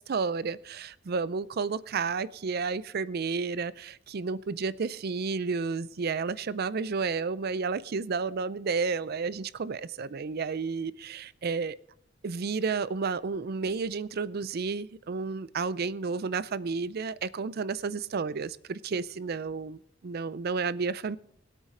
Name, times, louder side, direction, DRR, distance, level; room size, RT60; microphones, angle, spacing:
voice 1, 0.1-11.8 12.2-21.2, right 4 dB, 55° right, 18 dB, 0.5 m, -31 dB
20.0 x 8.4 x 3.8 m, 0.66 s
head